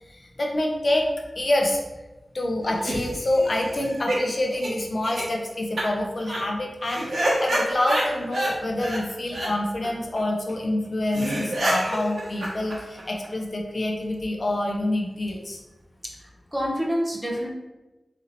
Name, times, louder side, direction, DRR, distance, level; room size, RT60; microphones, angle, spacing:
voice 1, 0.1-1.1 1.4-1.8 2.3-15.6, left 1 dB, 50° left, 0 dB, 0.7 m, -26 dB
sound 1, 2.6-4.2 4.5-4.7 5.0-5.2 5.8-5.9 6.2-6.4 6.8-8.5 8.8-9.0 9.3-9.5 9.8-9.9 10.2-10.3 10.5-10.6 10.8-10.9 11.1-13.3, right 1 dB, 75° right, 1.1 m, -27 dB
voice 2, 16.0-17.5, equal, 10° right, -1 dB, 0.8 m, -28 dB
4.1 x 2.8 x 4.1 m, 1.1 s
wide cardioid pair, 85°, 0 cm